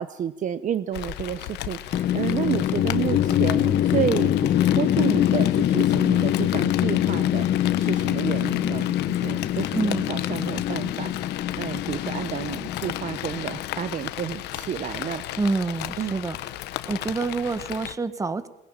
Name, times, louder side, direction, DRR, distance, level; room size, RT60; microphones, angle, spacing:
voice 1, 0.0-15.2 16.0-16.2, right 9 dB, 50° right, 13 dB, 0.9 m, -31 dB
Rain, 0.9-18.0, left 15 dB, 85° left, 1.2 m, -35 dB
sound 1, 1.9-14.1, left 11 dB, 55° left, 1.1 m, -24 dB
voice 2, 15.4-16.4 16.9-18.5, right 3 dB, 20° right, 13 dB, 1.5 m, -27 dB
21.5 x 20.5 x 8.8 m, 0.83 s
cardioid pair, 110°, 17 cm